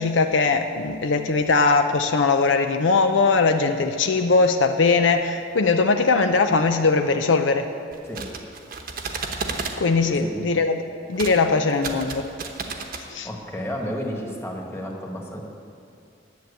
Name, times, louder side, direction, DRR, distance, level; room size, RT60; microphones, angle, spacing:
voice 1, 0.0-7.7 9.8-12.3 13.1-13.3, left 4 dB, 75° left, 7 dB, 0.6 m, -20 dB
sound 1, 7.9-9.8 11.1-11.4 11.7-13.0, right 4 dB, 55° right, 1.0 m, -32 dB
voice 2, 10.1-10.4 13.2-15.4, equal, 15° left, 0 dB, 1.5 m, -31 dB
10.5 x 7.7 x 8.4 m, 2.4 s
head